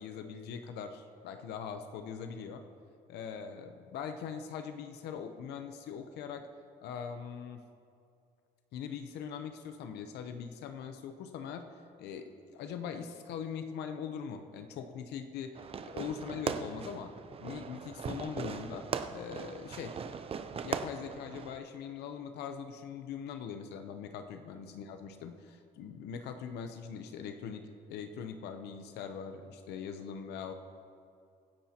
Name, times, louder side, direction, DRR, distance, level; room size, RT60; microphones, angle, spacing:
voice 1, 0.0-2.6 3.1-6.5 6.8-7.6 8.7-11.7 12.0-17.1 17.4-20.0 20.6-30.5, left 7 dB, 80° left, 7 dB, 0.8 m, -42 dB
Fireworks, 15.5-21.6, right 6 dB, 35° right, 0.6 m, -39 dB
24.5 x 9.8 x 2.9 m, 2.4 s
cardioid pair, 110°, 17 cm